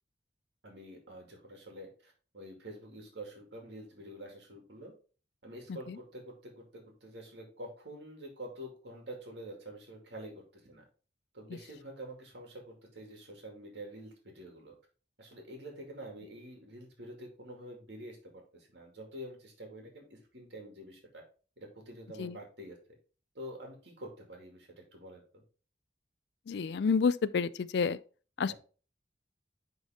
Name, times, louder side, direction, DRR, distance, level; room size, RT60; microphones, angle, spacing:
voice 1, 0.6-4.9 5.4-10.8 11.3-14.7 15.2-21.2 21.6-22.8 23.3-25.4 28.5-28.6, right 1 dB, 70° right, 2.3 m, -47 dB
voice 2, 26.5-28.0 28.4-28.5, left 5 dB, 65° left, 0.4 m, -29 dB
9.8 x 4.0 x 3.6 m
head